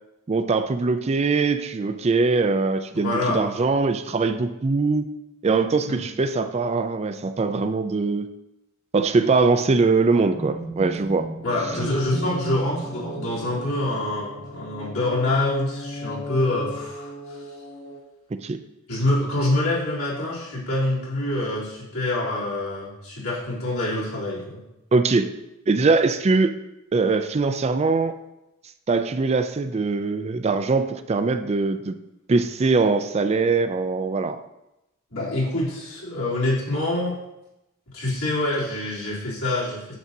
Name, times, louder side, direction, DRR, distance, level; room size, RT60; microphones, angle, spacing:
voice 1, 0.3-5.1 5.4-8.3 8.9-11.2 18.4-18.6 24.9-25.3 25.7-26.5 26.9-28.2 28.9-32.0 32.3-34.4, right 4 dB, 30° right, 9 dB, 0.4 m, -22 dB
voice 2, 2.9-3.4 5.8-6.0 11.4-17.4 18.9-24.6 35.1-37.2 37.9-40.0, left 1 dB, 80° left, -7 dB, 3.2 m, -26 dB
sound 1, 10.3-14.2, right 3 dB, 25° left, 3.0 m, -36 dB
sound 2, 11.4-18.0, left 1 dB, 50° left, 1.0 m, -38 dB
9.3 x 7.4 x 2.7 m, 0.91 s
head